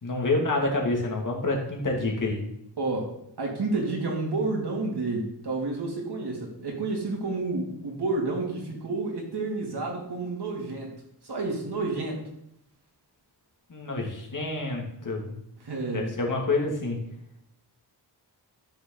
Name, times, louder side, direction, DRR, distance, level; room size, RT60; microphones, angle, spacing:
voice 1, 0.0-2.5 13.7-15.3 15.9-17.0, left 2 dB, 45° left, 0 dB, 2.4 m, -28 dB
voice 2, 2.8-10.9 11.2-12.2 15.6-16.1, right 3 dB, 65° right, 0 dB, 2.8 m, -30 dB
13.0 x 6.7 x 4.0 m, 0.77 s
wide cardioid pair, 145°, 43 cm